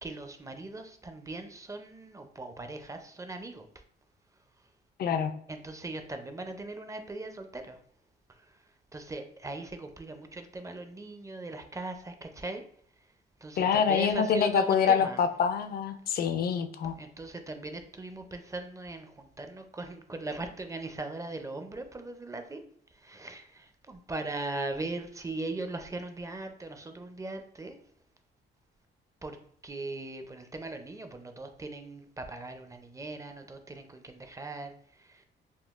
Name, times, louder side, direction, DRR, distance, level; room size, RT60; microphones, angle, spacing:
voice 1, 0.0-3.7 5.5-7.8 8.3-8.6 8.9-12.6 13.0-13.1 13.4-15.2 17.0-22.6 22.9-27.8 29.2-29.4 29.6-35.2, right 2 dB, 15° right, 6 dB, 0.4 m, -39 dB
voice 2, 5.0-5.3 13.6-17.0, left 7 dB, 50° left, 9 dB, 0.4 m, -26 dB
3.6 x 2.3 x 2.4 m, 0.63 s
cardioid pair, 90°, 20 cm